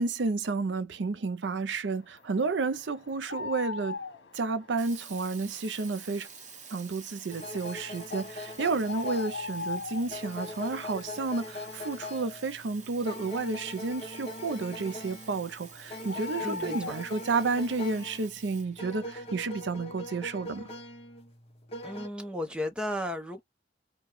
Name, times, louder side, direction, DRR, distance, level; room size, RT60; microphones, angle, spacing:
voice 1, 0.0-4.0 4.3-6.3 6.7-20.7, right 3 dB, 75° right, 0.5 m, -31 dB
sound 1, 2.0-18.3, left 4 dB, 75° left, 1.3 m, -43 dB
Sink (filling or washing), 4.8-19.5, right 6 dB, 40° right, 0.8 m, -50 dB
sound 2, 7.3-22.1, left 1 dB, 35° left, 0.9 m, -42 dB
voice 2, 16.4-16.9 21.8-23.4, left 1 dB, 5° right, 0.8 m, -34 dB
4.8 x 2.3 x 3.2 m
head